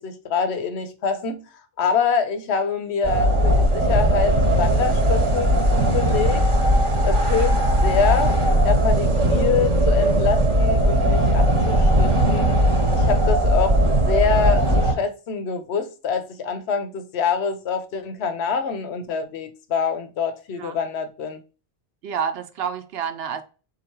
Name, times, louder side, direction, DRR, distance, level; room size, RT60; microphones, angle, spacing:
voice 1, 0.0-1.4 1.8-6.5 7.0-12.5 12.9-21.4, left 5 dB, 85° left, 1.0 m, -25 dB
sound 1, 3.0-14.9, right 1 dB, 30° right, 0.9 m, -18 dB
voice 2, 22.0-23.4, right 7 dB, 75° right, 0.8 m, -28 dB
3.9 x 2.9 x 4.4 m
omnidirectional pair, 1.1 m